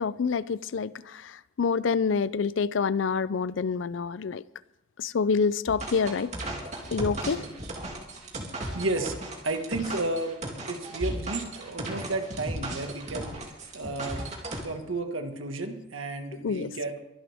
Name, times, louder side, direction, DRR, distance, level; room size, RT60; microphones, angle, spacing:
voice 1, 0.0-4.4 5.0-6.3 6.9-7.4 16.4-16.7, left 5 dB, 75° left, 0.5 m, -27 dB
sound 1, 5.7-14.6, right 1 dB, 35° right, 2.6 m, -36 dB
voice 2, 8.7-9.1 9.4-10.3 10.7-13.4 13.7-14.2 14.6-17.0, right 2 dB, 85° right, 1.7 m, -32 dB
23.5 x 11.0 x 3.5 m
head